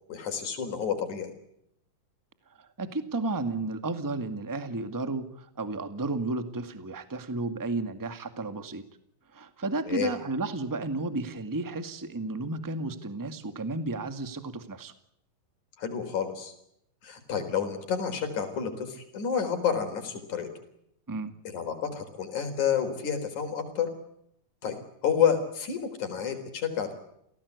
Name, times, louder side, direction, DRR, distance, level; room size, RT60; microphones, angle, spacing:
voice 1, 0.1-1.3 9.9-10.1 15.8-16.5 17.0-20.5 21.5-23.9 24.6-24.8 25.0-26.9, left 7 dB, 55° left, 7 dB, 5.5 m, -29 dB
voice 2, 2.6-8.8 9.3-14.9 21.1-21.3, right 3 dB, 10° right, 9 dB, 0.9 m, -33 dB
29.0 x 18.0 x 8.4 m, 0.76 s
omnidirectional pair, 4.2 m